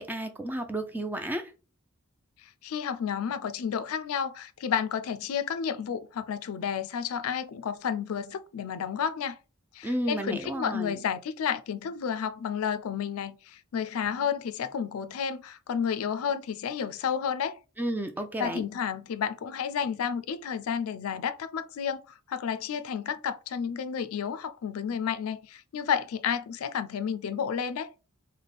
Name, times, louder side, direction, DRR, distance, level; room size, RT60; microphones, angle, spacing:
voice 1, 0.0-1.5 9.8-11.0 17.8-18.6, right 1 dB, 10° right, 0.4 m, -32 dB
voice 2, 2.4-9.4 9.7-17.6 18.4-22.0 22.3-27.9, left 7 dB, 85° left, 0.4 m, -31 dB
3.4 x 2.2 x 4.0 m
head